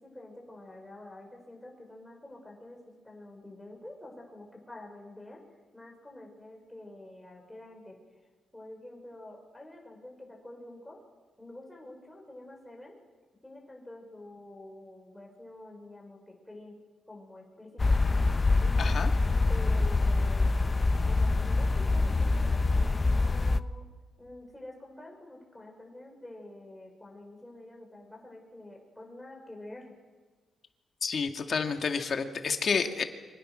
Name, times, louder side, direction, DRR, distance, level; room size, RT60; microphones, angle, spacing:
voice 1, 0.0-5.4 5.7-8.0 8.5-11.0 11.4-13.0 13.4-16.8 17.1-18.0 18.5-18.9 19.5-20.6 21.0-22.5 22.8-23.9 24.2-29.9, left 1 dB, 5° left, 0 dB, 5.8 m, -48 dB
sound 1, 17.8-23.6, left 3 dB, 25° left, 0.7 m, -25 dB
voice 2, 18.8-19.1 31.0-33.0, left 5 dB, 45° left, 5 dB, 2.0 m, -29 dB
27.5 x 25.5 x 6.3 m, 1.4 s
cardioid pair, 140°, 0 cm